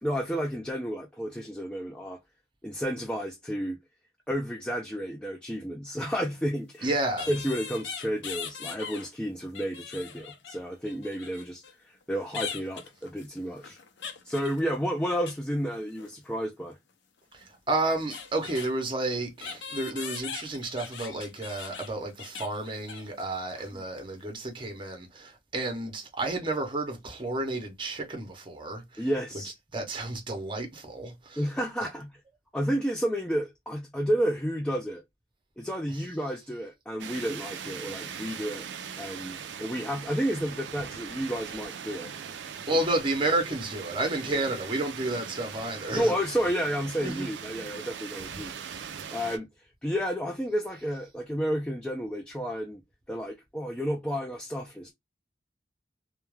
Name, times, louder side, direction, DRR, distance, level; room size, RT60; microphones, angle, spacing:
voice 1, 0.0-2.2 2.6-3.8 4.3-7.0 7.3-13.8 14.2-16.8 23.7-23.8 29.0-29.5 31.4-32.1 32.5-35.0 35.6-38.7 39.0-42.1 42.7-42.8 44.3-44.5 45.9-49.5 49.8-52.8 53.1-54.9, equal, 5° left, 0.3 m, -31 dB
sound 1, 6.3-6.4 7.2-9.1 9.4-11.7 12.3-15.4 15.7-16.1 17.4-17.5 17.7-18.7 19.4-23.2 23.5-23.7 24.0-24.1, left 7 dB, 80° left, 0.5 m, -40 dB
voice 2, 6.8-7.3 17.3-29.1 29.7-31.4 42.7-46.1 47.0-47.3, right 2 dB, 30° right, 0.6 m, -31 dB
sound 2, 37.0-49.4, right 7 dB, 85° right, 0.4 m, -40 dB
2.3 x 2.1 x 3.1 m
head